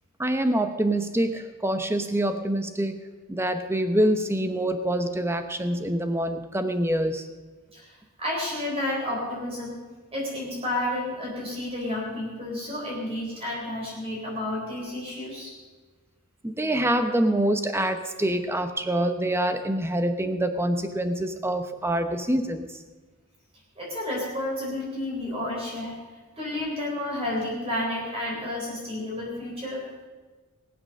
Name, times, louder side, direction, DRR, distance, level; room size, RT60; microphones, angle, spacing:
voice 1, 0.2-3.0 3.3-7.2 16.4-22.8, right 1 dB, 10° right, 8 dB, 0.9 m, -25 dB
voice 2, 8.2-9.8 10.1-15.5 23.8-26.0 26.4-29.9, left 1 dB, 25° right, -3 dB, 4.0 m, -31 dB
19.5 x 8.1 x 6.5 m, 1.3 s
head